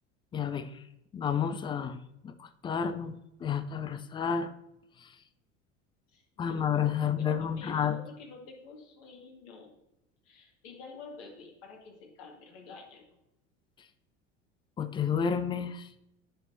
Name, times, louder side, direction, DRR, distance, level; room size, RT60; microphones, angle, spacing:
voice 1, 0.3-0.8 1.1-2.0 2.2-4.5 5.0-5.1 6.4-8.0 14.8-15.9, left 7 dB, 15° left, 12 dB, 0.4 m, -31 dB
voice 2, 6.1-9.8 10.2-13.2, left 4 dB, 55° left, -1 dB, 2.1 m, -49 dB
9.9 x 6.0 x 2.7 m, 0.87 s
figure-of-eight pair, 70°, 37 cm